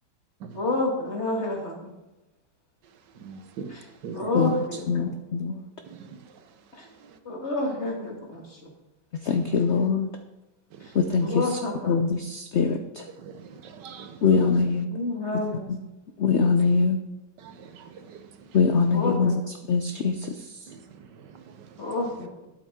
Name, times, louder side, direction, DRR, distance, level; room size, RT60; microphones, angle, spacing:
voice 1, 0.5-1.9 3.7-5.1 6.7-6.9 7.2-8.7 10.8-10.9 11.2-12.0 14.9-15.7 18.9-19.3 21.8-22.5, left 2 dB, 40° left, 2.1 m, -29 dB
voice 2, 3.2-4.6 5.8-6.5 6.8-7.2 9.3-9.8 10.7-11.3 13.0-14.5 16.6-16.9 17.4-18.6 20.7-21.8, right 6 dB, 80° right, 1.5 m, -44 dB
voice 3, 4.9-5.5 9.3-10.1 10.9-11.3 11.9-13.0 14.2-14.9 16.2-17.0 18.5-19.3 19.7-20.1, left 5 dB, 65° left, 0.7 m, -22 dB
12.0 x 8.4 x 3.7 m
omnidirectional pair, 1.9 m